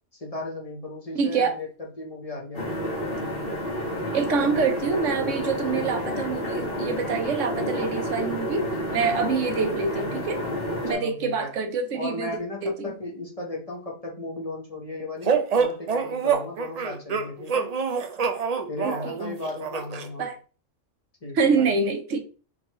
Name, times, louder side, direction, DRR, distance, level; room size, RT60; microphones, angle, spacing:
voice 1, 0.2-1.7 2.0-2.7 10.9-11.5 11.9-17.7 18.7-20.3 21.2-21.7, left 2 dB, 30° left, -2 dB, 1.1 m, -35 dB
voice 2, 1.1-1.5 4.1-8.6 8.9-10.4 10.8-12.9 18.8-19.2 20.2-20.4 21.3-22.2, right 5 dB, 80° right, 6 dB, 1.2 m, -26 dB
sound 1, 2.5-10.9, equal, 50° left, 1.7 m, -30 dB
sound 2, 15.2-20.1, right 6 dB, 55° right, 0.4 m, -26 dB
4.5 x 3.9 x 3.0 m, 0.36 s
omnidirectional pair, 1.3 m